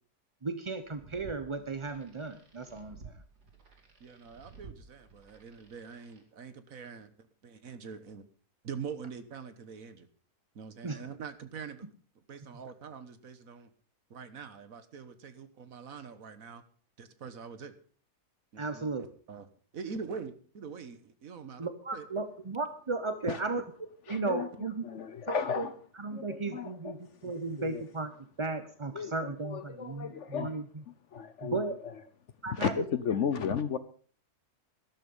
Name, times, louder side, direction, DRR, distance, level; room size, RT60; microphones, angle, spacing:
voice 1, 0.4-3.1 10.8-11.0 18.6-19.0 21.6-24.8 25.3-25.7 26.0-27.0 27.2-28.1 28.4-30.6 31.4-31.8 32.4-32.7, right 3 dB, 30° right, 0.5 m, -35 dB
sound 1, 0.7-6.2, right 4 dB, 80° right, 3.1 m, -53 dB
voice 2, 4.0-8.2 8.6-10.1 10.5-11.9 12.3-13.7 14.1-16.6 17.0-17.7 18.5-19.5 19.7-22.1, right 6 dB, 60° right, 1.6 m, -44 dB
voice 3, 24.1-24.5 24.8-25.8 26.1-27.9 28.9-30.6 30.9-32.0 32.5-33.8, left 7 dB, 55° left, 1.0 m, -35 dB
12.5 x 12.5 x 5.4 m
omnidirectional pair, 1.7 m